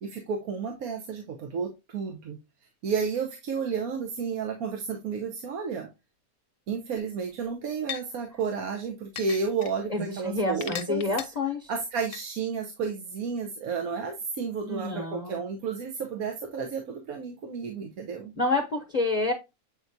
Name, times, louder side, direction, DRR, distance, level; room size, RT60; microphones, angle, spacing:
voice 1, 0.0-2.4 2.8-5.9 6.7-11.0 11.7-18.3, right 5 dB, 75° right, 3 dB, 1.4 m, -32 dB
sound 1, 7.0-7.1 7.9-8.0 9.2-9.7 10.6-11.2 12.1-12.2, left 10 dB, 65° left, 1.1 m, -35 dB
voice 2, 9.9-11.7 14.6-15.4 18.4-19.3, left 2 dB, 35° left, 3 dB, 0.8 m, -28 dB
8.2 x 4.5 x 2.6 m, 0.23 s
omnidirectional pair, 1.5 m